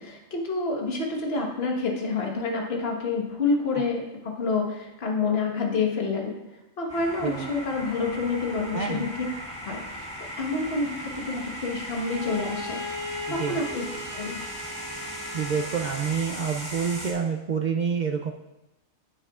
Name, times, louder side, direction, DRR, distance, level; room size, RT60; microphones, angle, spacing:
voice 1, 0.0-9.3 9.6-10.1 10.4-13.8 14.1-14.4, left 3 dB, 50° left, 0 dB, 1.5 m, -28 dB
sound 1, 6.9-17.1, equal, 5° left, 1.8 m, -38 dB
voice 2, 8.7-9.1 13.3-13.6 15.3-18.3, right 6 dB, 85° right, 2 dB, 0.4 m, -28 dB
Bowed string instrument, 12.0-16.2, left 2 dB, 30° right, 2.0 m, -38 dB
9.9 x 9.0 x 2.4 m, 0.97 s
omnidirectional pair, 1.4 m